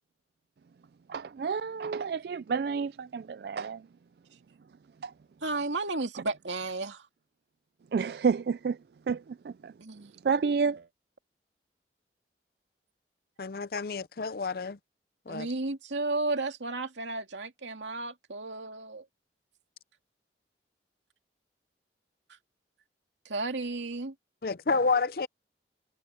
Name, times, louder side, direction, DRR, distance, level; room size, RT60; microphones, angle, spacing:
voice 1, 1.1-3.8 5.0-5.1 7.9-8.8 9.1-9.7 10.2-10.8, right 5 dB, 60° right, 0.3 m, -30 dB
voice 2, 5.4-7.1 9.8-10.1 15.3-19.0 23.2-24.1, right 3 dB, 85° right, 2.4 m, -33 dB
voice 3, 13.4-14.8 15.3-15.5 24.4-25.3, left 4 dB, 55° left, 0.6 m, -29 dB
head